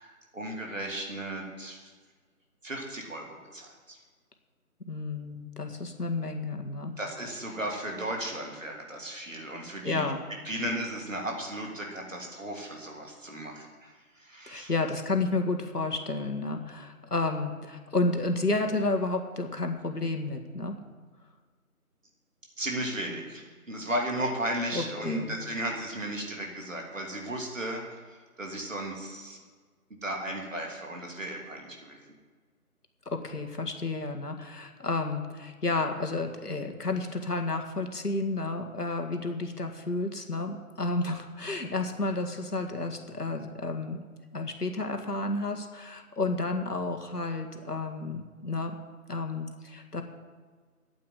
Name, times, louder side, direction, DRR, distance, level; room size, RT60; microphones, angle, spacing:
voice 1, 0.0-1.9 2.6-3.3 3.5-4.0 7.0-10.1 10.4-14.7 22.6-29.4 30.0-32.0, right 1 dB, 55° right, 0 dB, 3.0 m, -35 dB
voice 2, 4.8-6.9 9.8-10.2 14.5-20.8 24.7-25.4 33.1-44.0 44.3-48.8 49.1-50.0, left 2 dB, 85° left, 4 dB, 2.1 m, -31 dB
8.8 x 8.6 x 9.6 m, 1.5 s
figure-of-eight pair, 170°, 45 cm